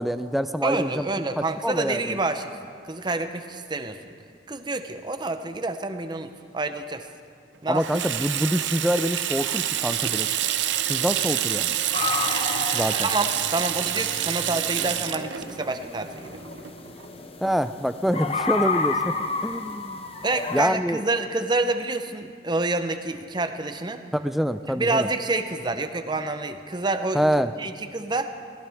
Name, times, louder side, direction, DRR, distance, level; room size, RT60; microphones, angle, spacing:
voice 1, 0.0-1.1 1.6-2.2 7.7-10.3 10.9-11.8 12.7-13.1 17.4-19.2 19.4-20.1 20.5-21.0 24.1-25.1 27.1-27.5, equal, ahead, 10 dB, 0.4 m, -25 dB
voice 2, 0.6-2.5 2.8-4.0 4.5-7.1 7.6-7.8 13.0-16.4 20.2-24.0 24.8-27.2 27.6-28.3, right 2 dB, 25° right, 8 dB, 0.7 m, -28 dB
Water tap faucet / Sink (filling or washing), 7.7-17.1, right 11 dB, 90° right, 0.6 m, -27 dB
sound 1, 11.9-20.7, left 4 dB, 35° left, 0.8 m, -31 dB
23.0 x 17.0 x 3.5 m, 2.2 s
head